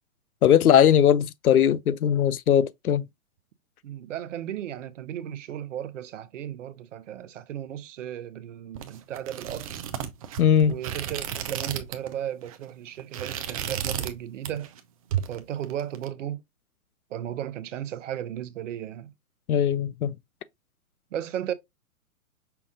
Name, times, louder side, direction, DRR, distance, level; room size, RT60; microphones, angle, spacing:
voice 1, 0.4-3.0 10.4-10.7 19.5-20.1, left 9 dB, 90° left, 0.6 m, -20 dB
voice 2, 3.8-9.8 10.7-14.7 15.3-16.4 17.1-19.1 21.1-21.5, right 10 dB, 60° right, 0.8 m, -35 dB
sound 1, 8.7-12.1 12.4-12.6 13.0-14.2 14.4-14.8 15.1-16.1, right 10 dB, 25° right, 0.4 m, -33 dB
5.8 x 2.4 x 3.6 m
hypercardioid pair, 130°, 42 cm